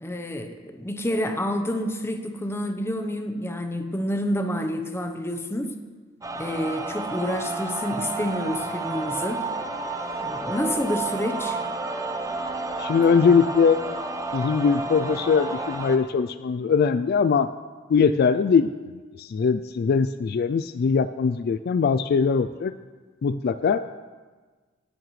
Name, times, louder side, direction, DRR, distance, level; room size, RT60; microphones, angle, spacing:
voice 1, 0.0-5.7 6.3-9.4 10.2-11.6, equal, 15° left, 5 dB, 0.9 m, -28 dB
sound 1, 6.2-16.0, right 3 dB, 15° right, 0.8 m, -31 dB
voice 2, 12.8-13.8 14.3-17.5 17.9-18.7 19.2-22.7 23.2-23.8, left 5 dB, 55° left, 12 dB, 0.3 m, -21 dB
18.0 x 11.0 x 3.2 m, 1.4 s
head